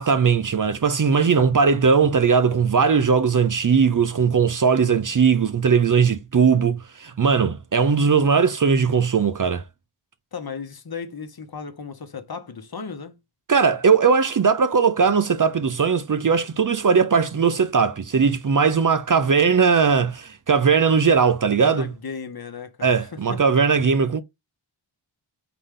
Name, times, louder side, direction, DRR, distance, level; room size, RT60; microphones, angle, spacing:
voice 1, 0.0-9.6 13.5-21.9 22.8-24.2, right 5 dB, 40° right, 0.6 m, -19 dB
voice 2, 10.3-13.2 21.6-23.4, left 5 dB, 45° left, 1.0 m, -35 dB
3.9 x 3.3 x 3.7 m
wide cardioid pair, 65°, 49 cm